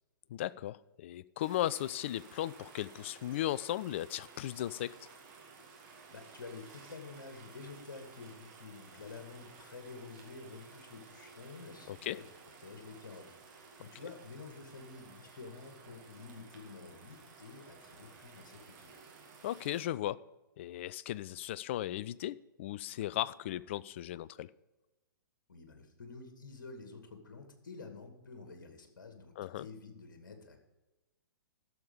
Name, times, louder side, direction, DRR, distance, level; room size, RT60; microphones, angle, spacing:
voice 1, 0.3-4.9 11.9-12.2 19.4-20.2 20.6-24.5 29.4-29.7, left 13 dB, 35° left, 18 dB, 0.3 m, -36 dB
sound 1, 1.4-19.8, right 4 dB, 30° right, 2.2 m, -55 dB
voice 2, 6.1-12.2 12.6-18.9 25.5-30.6, left 4 dB, 60° left, 5 dB, 2.3 m, -49 dB
12.0 x 7.2 x 5.2 m, 1.1 s
figure-of-eight pair, 115°, 11 cm